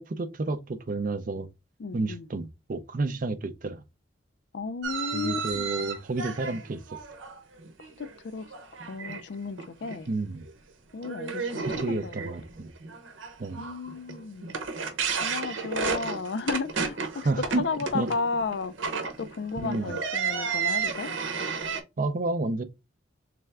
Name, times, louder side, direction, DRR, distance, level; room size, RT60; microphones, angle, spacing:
voice 1, 0.0-1.5 1.9-3.8 5.1-6.8 10.1-10.5 11.7-12.7 13.4-13.6 17.2-17.7 17.9-18.1 19.6-20.0 22.0-22.6, right 3 dB, 45° right, 0.5 m, -30 dB
voice 2, 1.8-2.3 4.5-5.8 8.2-8.5 8.9-10.1 10.9-12.2 13.5-14.5 15.2-17.3 17.6-18.7 19.2-21.1, left 4 dB, 60° left, 0.4 m, -33 dB
sound 1, 4.8-8.2 8.4-9.2 9.6-10.0 10.4-10.5 11.0-21.8, right 5 dB, 85° right, 0.8 m, -32 dB
3.4 x 3.3 x 3.4 m
head